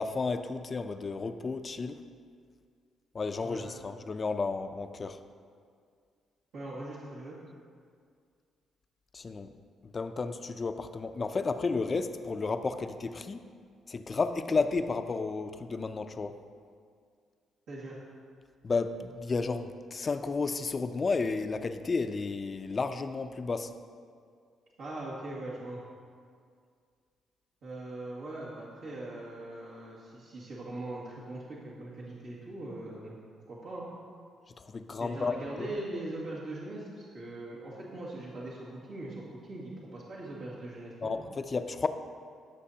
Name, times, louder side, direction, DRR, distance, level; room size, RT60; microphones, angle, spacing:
voice 1, 0.0-2.0 3.1-5.2 9.1-9.5 9.8-13.4 13.9-16.3 18.6-23.7 34.6-35.7 41.0-41.9, left 4 dB, 35° left, 9 dB, 0.5 m, -32 dB
voice 2, 6.5-7.4 17.7-18.0 24.8-25.8 27.6-33.9 35.0-41.1, right 2 dB, 80° right, -9 dB, 2.1 m, -41 dB
15.5 x 6.2 x 2.8 m, 2.1 s
cardioid pair, 90°, 0 cm